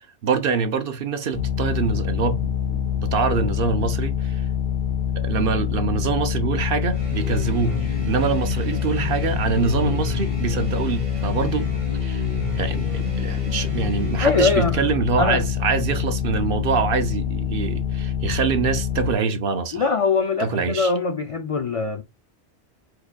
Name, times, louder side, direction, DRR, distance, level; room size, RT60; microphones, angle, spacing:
voice 1, 0.2-4.4 5.2-7.8 8.1-11.7 12.0-12.3 12.6-19.9 20.4-20.9, right 5 dB, 60° right, 0.8 m, -25 dB
sound 1, 1.3-19.1, left 8 dB, 75° left, 1.1 m, -25 dB
sound 2, 6.9-14.7, equal, 30° right, 1.9 m, -33 dB
voice 2, 14.2-14.8 15.2-15.4 19.7-22.0, left 4 dB, 55° left, 0.3 m, -22 dB
4.8 x 4.7 x 2.2 m
omnidirectional pair, 1.2 m